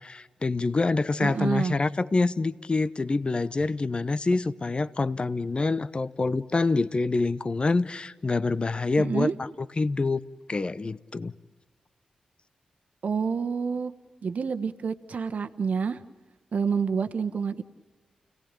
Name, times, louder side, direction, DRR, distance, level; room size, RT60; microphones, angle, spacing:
voice 1, 0.0-9.3 9.8-10.2 10.5-11.3, left 3 dB, 40° left, 15 dB, 0.9 m, -26 dB
voice 2, 1.2-1.7 9.0-9.3 13.0-13.9 14.2-16.0 16.5-17.6, right 6 dB, 60° right, 9 dB, 1.2 m, -28 dB
30.0 x 18.0 x 9.0 m, 1.3 s
supercardioid pair, 40°, 3 cm